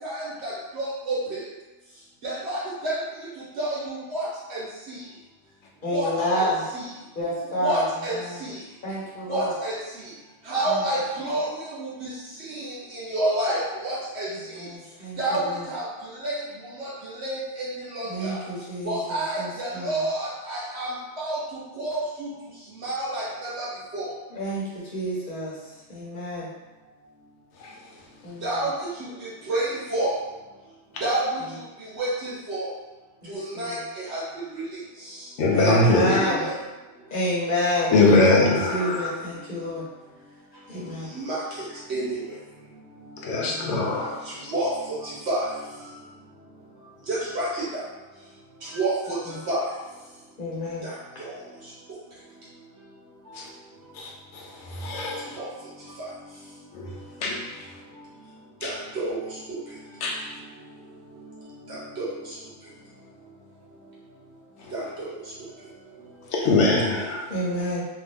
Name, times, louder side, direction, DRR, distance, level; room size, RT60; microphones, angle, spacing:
voice 1, 0.0-1.4 2.2-3.0 3.6-4.6 4.9-5.0 5.9-6.1 6.4-6.9 7.6-8.6 9.3-9.8 10.5-12.1 12.5-14.6 15.2-15.8 16.1-16.3 16.8-18.5 18.8-21.4 21.8-22.3 22.8-23.7 23.9-24.1 28.4-28.9 29.2-30.1 31.0-31.4 31.8-32.7 33.3-34.2 34.5-34.6 35.6-35.8 36.1-36.5 41.1-41.4 41.9-42.2 43.9-44.0 44.5-45.5 47.1-47.8 48.6-49.2 49.5-49.6 50.8-51.3 55.4-55.5 58.6-59.2 61.7-62.1 64.7-65.2, right 1 dB, 70° right, -7 dB, 1.1 m, -29 dB
voice 2, 5.8-6.6 7.1-7.8 8.1-8.4 8.8-9.5 10.6-10.8 14.4-15.7 18.0-20.0 24.3-25.6 25.9-26.5 28.2-28.6 33.2-33.8 35.5-36.5 37.1-38.0 38.4-39.8 40.7-41.1 43.4-43.8 49.2-49.4 50.4-50.9 67.3-67.8, left 1 dB, 45° left, -7 dB, 1.2 m, -29 dB
voice 3, 35.4-36.1 37.9-39.1 40.8-40.9 43.2-44.2 54.0-54.1 54.8-55.2 57.2-57.4 58.6-58.7 60.0-60.1 66.3-67.2, left 2 dB, 80° left, -1 dB, 1.0 m, -21 dB
2.7 x 2.6 x 3.5 m, 1.2 s
omnidirectional pair, 1.2 m